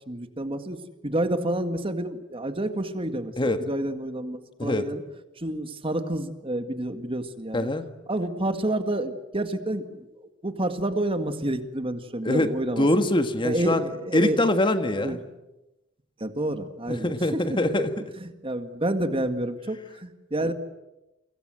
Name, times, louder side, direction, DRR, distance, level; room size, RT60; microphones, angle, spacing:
voice 1, 0.1-5.0 5.4-7.7 8.1-10.1 10.4-12.9 13.4-14.4 15.0-15.2 16.2-17.8 18.4-20.5, right 1 dB, 30° right, 9 dB, 1.9 m, -29 dB
voice 2, 7.5-7.9 12.2-12.5 12.8-15.2 16.9-17.9 20.4-20.5, left 1 dB, 25° left, 8 dB, 1.7 m, -24 dB
30.0 x 25.0 x 7.8 m, 0.98 s
head